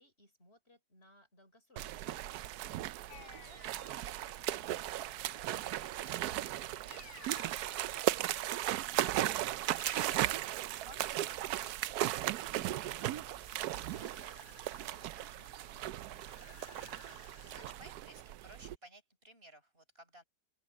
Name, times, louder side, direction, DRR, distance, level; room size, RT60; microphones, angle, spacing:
voice 1, 0.0-2.7 3.1-10.5 11.2-16.5, left 1 dB, 35° left, 4.4 m, -64 dB
sound 1, 1.8-18.8, right 14 dB, 70° right, 1.1 m, -37 dB
sound 2, 3.1-4.0 6.9-8.2 9.8-10.4, left 8 dB, 80° left, 2.0 m, -54 dB
sound 3, 9.1-17.7, left 3 dB, 55° left, 3.5 m, -61 dB
voice 2, 10.8-11.5 17.0-20.2, right 1 dB, 35° right, 5.4 m, -57 dB
open air
omnidirectional pair, 1.8 m